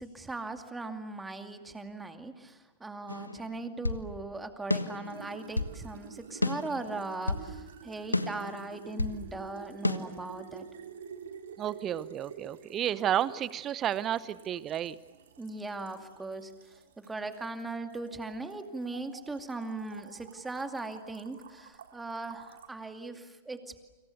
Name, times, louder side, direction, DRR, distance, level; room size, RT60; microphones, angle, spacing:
voice 1, 0.0-10.7 15.4-23.8, right 3 dB, 10° right, 6 dB, 2.4 m, -39 dB
sound 1, 3.1-4.1 4.7-5.8 6.4-7.5 8.1-9.2 9.8-10.0, left 2 dB, 85° left, 1.3 m, -32 dB
sound 2, 5.0-22.7, right 7 dB, 65° right, 3.3 m, -50 dB
voice 2, 11.6-15.0, right 10 dB, 30° right, 18 dB, 0.9 m, -31 dB
29.5 x 26.5 x 6.8 m, 1.2 s
figure-of-eight pair, 95°, 0 cm